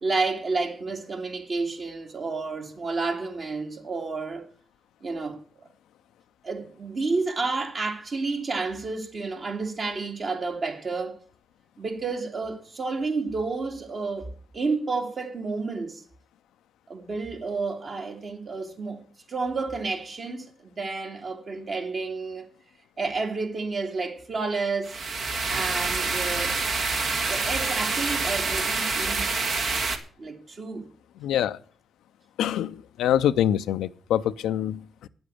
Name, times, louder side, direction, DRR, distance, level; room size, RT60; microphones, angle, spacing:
voice 1, 0.0-4.5 5.0-5.4 6.4-11.2 11.8-16.0 16.9-19.0 19.3-20.5 20.7-22.5 23.0-25.0 25.5-26.6 27.3-29.3 30.2-30.9, right 3 dB, 55° right, 2.7 m, -30 dB
sound 1, 24.8-30.0, right 3 dB, 70° right, 1.8 m, -27 dB
voice 2, 31.2-31.6 32.4-35.1, left 10 dB, 85° left, 0.5 m, -25 dB
9.6 x 7.9 x 8.2 m
supercardioid pair, 55°, 0 cm